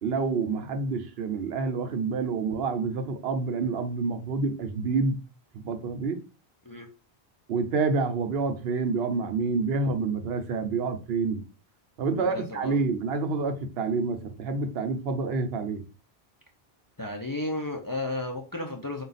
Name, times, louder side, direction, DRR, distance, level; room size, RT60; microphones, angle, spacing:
voice 1, 0.0-5.2 5.6-6.2 7.5-11.4 12.0-15.8, right 4 dB, 75° right, 0.9 m, -28 dB
voice 2, 12.1-12.8 17.0-19.0, left 2 dB, 30° left, 0.4 m, -33 dB
3.9 x 2.3 x 4.0 m
omnidirectional pair, 1.0 m